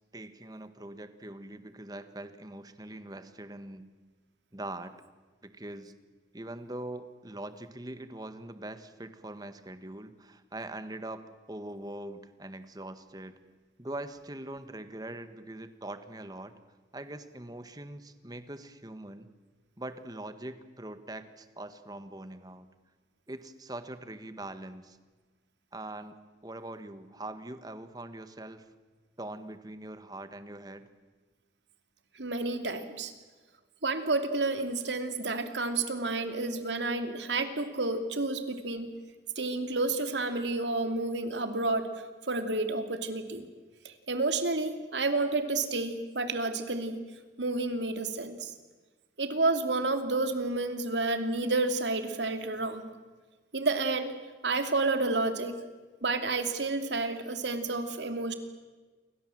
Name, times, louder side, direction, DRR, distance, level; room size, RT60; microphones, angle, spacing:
voice 1, 0.1-3.9 4.5-4.9 5.4-5.9 6.3-11.2 11.5-13.4 13.8-16.5 16.9-19.3 19.8-22.7 23.3-25.0 25.7-28.7 29.2-30.9, right 1 dB, 20° right, 10 dB, 1.7 m, -42 dB
voice 2, 32.2-33.1 33.8-38.9 39.4-41.9 42.3-43.5 43.8-47.0 47.4-48.5 49.2-52.9 53.5-54.1 54.4-55.6 56.0-58.3, right 3 dB, 90° right, 7 dB, 2.8 m, -30 dB
29.0 x 23.5 x 7.8 m, 1.3 s
head